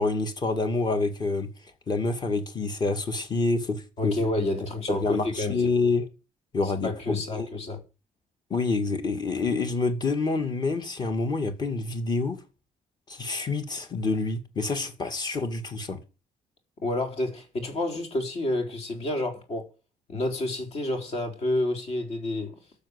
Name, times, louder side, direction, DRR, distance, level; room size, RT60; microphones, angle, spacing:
voice 1, 0.0-1.5 1.9-4.2 4.9-6.1 6.5-7.7 8.5-12.4 13.1-16.0, left 3 dB, 30° left, 2.3 m, -27 dB
voice 2, 4.0-5.7 6.6-7.8 16.8-19.7 20.1-22.6, left 2 dB, 50° left, 4.1 m, -29 dB
13.0 x 7.3 x 8.1 m
cardioid pair, 160°, 14 cm